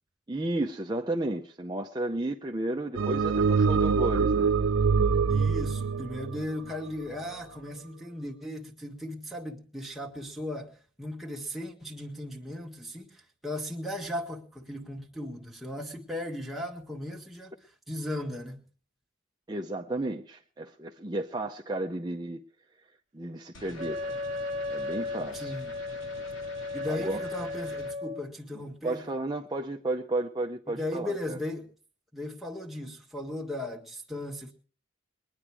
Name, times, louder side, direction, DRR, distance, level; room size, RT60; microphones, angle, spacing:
voice 1, 0.3-4.5 19.5-22.4 23.1-24.2 24.7-25.5 26.9-27.2 28.8-31.4, right 2 dB, 20° right, 0.7 m, -33 dB
sound 1, 2.9-7.3, right 5 dB, 75° right, 0.6 m, -25 dB
voice 2, 5.3-17.5 17.9-18.6 25.3-25.7 26.7-29.1 30.7-31.7 32.1-34.5, left 1 dB, ahead, 1.7 m, -37 dB
sound 2, 23.5-27.9, left 2 dB, 70° left, 2.1 m, -47 dB
Wind instrument woodwind instrument, 23.8-28.3, left 2 dB, 35° right, 1.2 m, -35 dB
22.0 x 10.0 x 4.7 m
head